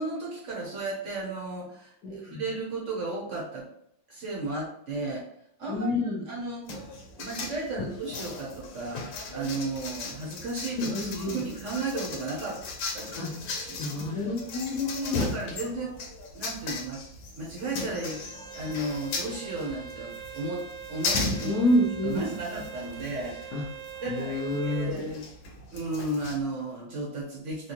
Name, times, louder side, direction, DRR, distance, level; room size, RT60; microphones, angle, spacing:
voice 1, 0.0-3.7 4.1-5.3 5.6-6.7 7.1-9.0 9.3-12.6 12.9-13.8 15.0-16.0 16.3-17.0 17.4-21.6 22.0-23.5 24.0-25.3 25.7-27.7, right 2 dB, 55° right, -2 dB, 0.9 m, -34 dB
voice 2, 2.0-2.4 5.7-6.2 10.8-11.4 13.2-13.3 13.8-15.3 21.4-22.3 23.5-23.6 24.1-25.0, left 1 dB, 60° left, -1 dB, 1.3 m, -28 dB
sound 1, 6.7-26.4, left 3 dB, 90° left, 1.5 m, -37 dB
Bowed string instrument, 18.0-24.9, right 8 dB, 90° right, 1.7 m, -43 dB
4.5 x 2.3 x 2.9 m, 0.70 s
omnidirectional pair, 2.0 m